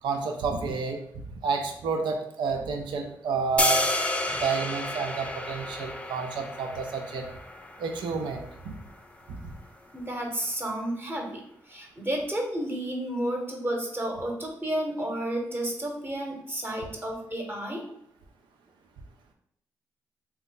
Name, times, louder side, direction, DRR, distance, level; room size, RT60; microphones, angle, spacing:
voice 1, 0.0-1.0 1.3-3.8 4.3-7.3 7.8-8.7 9.3-9.5, right 5 dB, 75° right, 4 dB, 0.5 m, -30 dB
sound 1, 3.6-9.7, left 2 dB, 15° left, 0.4 m, -31 dB
voice 2, 9.9-17.8, right 1 dB, 25° right, 2 dB, 1.0 m, -31 dB
2.8 x 2.3 x 3.7 m, 0.72 s
supercardioid pair, 45°, 8 cm